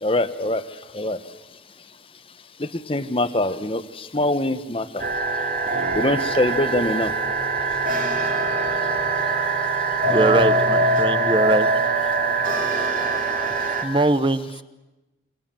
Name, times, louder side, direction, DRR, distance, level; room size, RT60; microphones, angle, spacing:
voice 1, 0.0-0.6 0.9-1.2 2.6-4.9 5.9-7.1, left 1 dB, 30° left, 11 dB, 1.1 m, -23 dB
sound 1, 5.0-13.8, right 3 dB, 45° right, 2.8 m, -22 dB
voice 2, 10.1-11.7 13.8-14.6, right 2 dB, 25° right, 13 dB, 1.0 m, -21 dB
28.0 x 23.5 x 7.6 m, 1.0 s
head